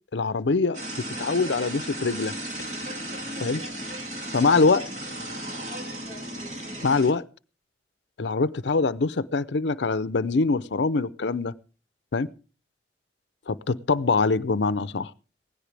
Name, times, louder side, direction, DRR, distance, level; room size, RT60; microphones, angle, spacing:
voice 1, 0.1-2.3 3.4-3.6 4.3-4.9 6.8-7.2 8.2-11.5 12.1-12.3 13.5-15.1, left 4 dB, 75° left, 15 dB, 0.6 m, -24 dB
sound 1, 0.7-7.1, right 1 dB, 40° right, 2.5 m, -35 dB
17.5 x 15.0 x 3.3 m, 0.35 s
head